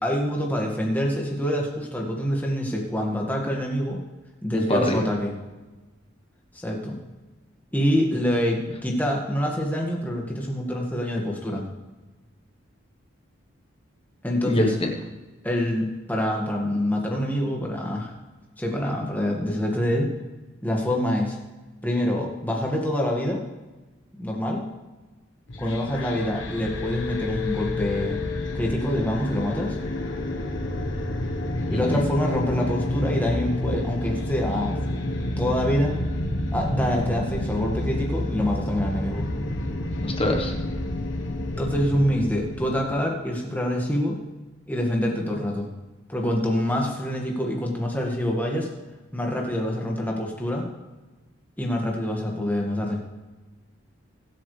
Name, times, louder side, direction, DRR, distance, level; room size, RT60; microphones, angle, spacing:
voice 1, 0.0-4.0 4.4-5.3 6.5-7.0 7.7-11.7 14.2-14.7 15.4-18.1 18.6-20.1 20.6-21.4 21.8-23.4 24.2-24.6 25.6-28.2 28.5-29.8 31.7-34.8 35.4-36.0 36.5-39.3 41.6-44.2 44.7-45.7 46.1-48.7 49.1-50.7 51.6-53.0, equal, 10° left, -1 dB, 1.9 m, -26 dB
voice 2, 4.5-5.0 14.4-14.9 31.7-32.0 40.0-40.5, left 1 dB, 25° left, 2 dB, 1.3 m, -24 dB
sound 1, 25.5-42.9, left 1 dB, 65° left, 1.3 m, -29 dB
22.5 x 8.6 x 3.4 m, 1.2 s
head